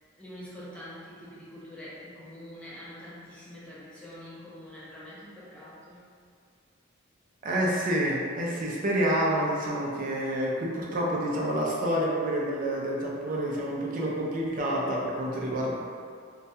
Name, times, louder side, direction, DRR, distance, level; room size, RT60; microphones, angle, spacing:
voice 1, 0.2-6.1, left 1 dB, 5° left, -10 dB, 0.5 m, -45 dB
voice 2, 7.4-15.7, right 1 dB, 40° right, -3 dB, 0.4 m, -28 dB
2.2 x 2.1 x 2.6 m, 2.2 s
head